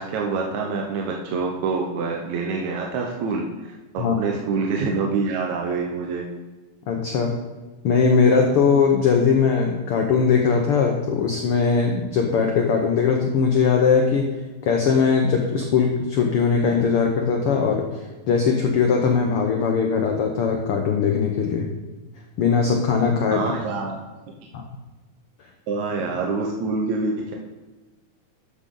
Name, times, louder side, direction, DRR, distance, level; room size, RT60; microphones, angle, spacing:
voice 1, 0.0-6.3 23.3-24.0 25.7-27.4, right 4 dB, 70° right, 0 dB, 2.1 m, -26 dB
voice 2, 6.9-7.4 7.8-14.4 14.6-18.0 18.3-21.7 22.4-23.5 24.5-24.6, left 5 dB, 85° left, 2 dB, 1.2 m, -20 dB
12.5 x 7.9 x 3.8 m, 1.2 s
omnidirectional pair, 3.8 m